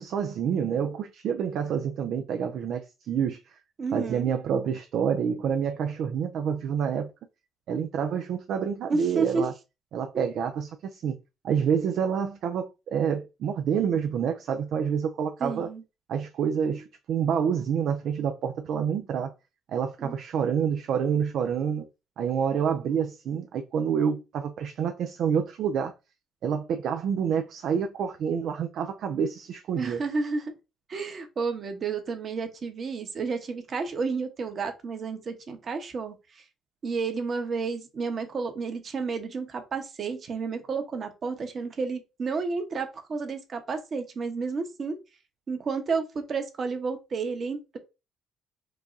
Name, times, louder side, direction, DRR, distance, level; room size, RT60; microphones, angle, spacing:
voice 1, 0.0-3.6 3.9-7.1 7.7-9.5 9.9-11.2 11.4-15.7 16.1-19.3 19.7-21.9 22.2-25.9 26.4-30.0, right 7 dB, 70° right, 0.4 m, -28 dB
voice 2, 3.8-4.3 8.9-9.5 10.1-10.3 15.4-15.8 20.0-20.1 29.8-30.5 30.9-36.2 36.8-45.0 45.5-47.8, right 4 dB, 50° right, 1.0 m, -31 dB
4.7 x 2.3 x 2.6 m
hypercardioid pair, 55°, 0 cm